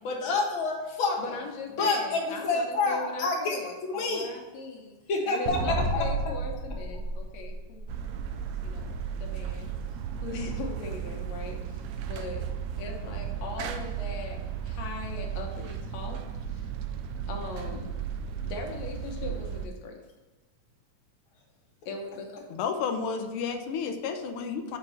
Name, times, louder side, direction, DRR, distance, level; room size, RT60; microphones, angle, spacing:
voice 1, 0.0-1.2 1.8-4.3 5.1-6.1, left 3 dB, 50° left, -2 dB, 2.1 m, -28 dB
voice 2, 1.2-5.0 5.3-8.3 8.5-9.7 10.2-12.4 12.8-16.2 16.5-16.7 17.3-18.0 18.3-20.0 21.9-22.5, left 4 dB, 70° left, 1 dB, 2.1 m, -39 dB
sound 1, 5.5-8.2, right 2 dB, 70° right, 1.1 m, -31 dB
sound 2, 7.9-19.7, right 8 dB, 85° right, 1.3 m, -35 dB
voice 3, 22.5-24.8, left 6 dB, 90° left, 5 dB, 1.2 m, -31 dB
6.6 x 4.7 x 6.9 m, 1.2 s
omnidirectional pair, 3.4 m